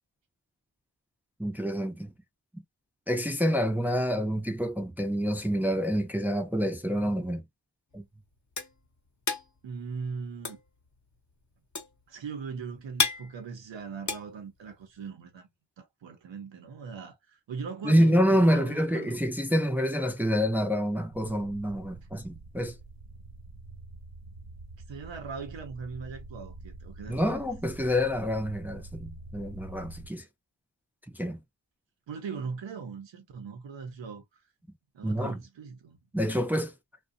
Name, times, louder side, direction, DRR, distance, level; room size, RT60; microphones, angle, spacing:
voice 1, 1.4-2.1 2.5-2.6 3.1-7.4 7.9-8.0 17.8-22.8 27.1-30.2 31.1-31.4 35.0-35.4 36.1-36.7, equal, 5° right, 0.5 m, -27 dB
sound 1, 7.9-15.1, left 4 dB, 40° left, 0.8 m, -34 dB
voice 2, 9.6-10.6 12.1-15.5 15.8-19.2 24.9-27.4 32.1-34.4 34.9-36.0, right 5 dB, 90° right, 0.7 m, -40 dB
sound 2, 21.1-30.1, right 2 dB, 55° right, 0.9 m, -46 dB
2.5 x 2.2 x 2.4 m
cardioid pair, 50°, 44 cm